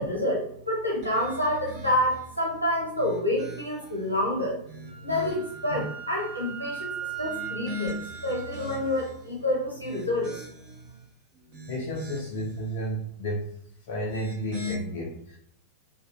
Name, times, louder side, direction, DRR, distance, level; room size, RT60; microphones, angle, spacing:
voice 1, 0.0-4.6 5.0-6.9 7.2-10.5, left 1 dB, 90° left, -3 dB, 0.8 m, -28 dB
sound 1, 1.0-2.3 2.9-4.0 4.5-5.6 7.1-9.2 9.7-10.9 11.4-12.5 13.9-14.7, left 1 dB, 45° right, 0.9 m, -40 dB
Wind instrument woodwind instrument, 4.8-9.0, right 8 dB, ahead, 0.7 m, -39 dB
voice 2, 11.7-13.5 13.9-15.4, equal, 55° left, -2 dB, 0.5 m, -32 dB
2.5 x 2.4 x 2.4 m, 0.65 s
figure-of-eight pair, 90°, 0 cm